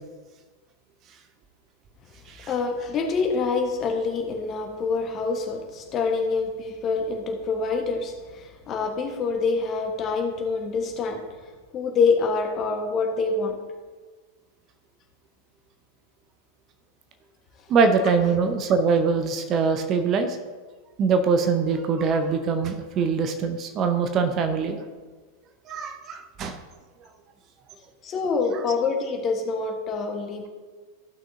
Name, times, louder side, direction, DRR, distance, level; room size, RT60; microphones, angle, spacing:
voice 1, 2.5-11.2 11.7-13.6 28.0-30.5, left 4 dB, 30° left, 2 dB, 1.3 m, -26 dB
voice 2, 17.7-20.4 21.0-24.8 25.7-26.6, right 5 dB, 30° right, 7 dB, 0.7 m, -23 dB
14.5 x 6.1 x 2.7 m, 1.4 s
figure-of-eight pair, 90°, 0 cm